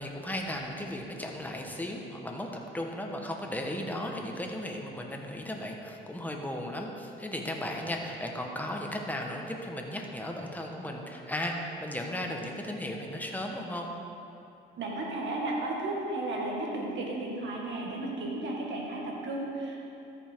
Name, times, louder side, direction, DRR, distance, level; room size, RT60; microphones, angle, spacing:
voice 1, 0.0-13.9, left 1 dB, 10° left, 1 dB, 1.2 m, -36 dB
voice 2, 14.8-19.9, right 2 dB, 70° right, -2 dB, 1.9 m, -34 dB
13.5 x 5.5 x 4.6 m, 2.8 s
cardioid pair, 90°, 20 cm